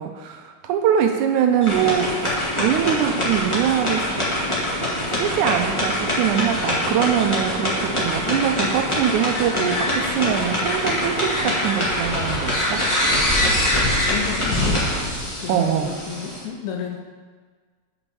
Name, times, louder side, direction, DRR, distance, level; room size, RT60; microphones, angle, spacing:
voice 1, 0.0-4.1 5.2-12.9 15.5-15.9, right 9 dB, 80° right, 5 dB, 1.9 m, -23 dB
sound 1, 1.6-16.4, left 1 dB, 15° left, 1.0 m, -23 dB
voice 2, 14.0-14.8 15.4-17.1, left 7 dB, 75° left, 3 dB, 1.8 m, -32 dB
6.0 x 5.4 x 6.9 m, 1.5 s
omnidirectional pair, 3.8 m